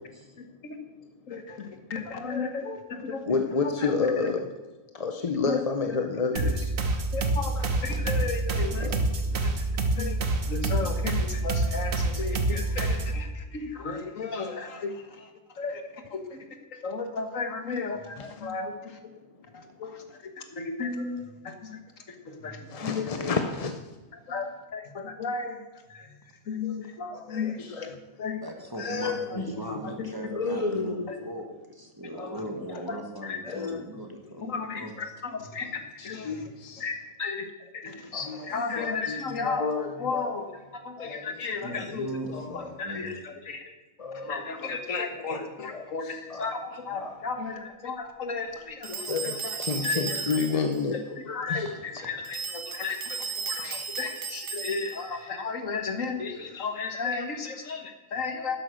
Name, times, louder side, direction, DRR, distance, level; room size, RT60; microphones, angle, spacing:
voice 1, 0.4-0.8 1.3-4.3 5.5-5.6 5.9-6.0 6.3-6.5 7.1-8.9 9.4-9.7 10.0-10.2 10.5-15.3 15.6-16.4 16.8-19.0 19.5-21.8 22.1-23.1 24.3-25.6 25.9-26.2 26.5-27.9 28.2-28.4 29.8-30.1 31.1-31.2 32.9-33.0 33.2-33.4 34.4-36.5 36.8-42.1 42.5-43.7 44.1-50.2 50.9-58.6, left 4 dB, 70° left, 5 dB, 1.8 m, -34 dB
voice 2, 3.3-4.5 4.9-6.7 8.8-9.0 18.2-18.3 22.7-23.8 27.1-28.0 28.8-29.9 30.3-31.3 32.2-32.4 32.7-32.8 33.4-33.8 34.4-34.5 36.0-36.9 38.1-38.5 38.8-40.4 41.0-41.3 41.7-41.9 42.3-42.8 43.1-43.2 44.0-44.3 45.3-46.6 46.9-47.2 49.1-51.0 51.5-51.7 53.6-53.8, left 4 dB, 35° left, 6 dB, 0.6 m, -31 dB
sound 1, 6.4-13.2, right 2 dB, 75° right, 1.6 m, -27 dB
voice 3, 28.4-34.9 38.4-38.5 41.6-43.1 51.6-51.8 53.6-53.7, right 1 dB, 15° right, 2 dB, 1.5 m, -39 dB
sound 2, 48.8-50.8 52.2-55.1, right 5 dB, 90° right, 1.8 m, -35 dB
12.0 x 10.5 x 6.3 m, 1.1 s
omnidirectional pair, 1.4 m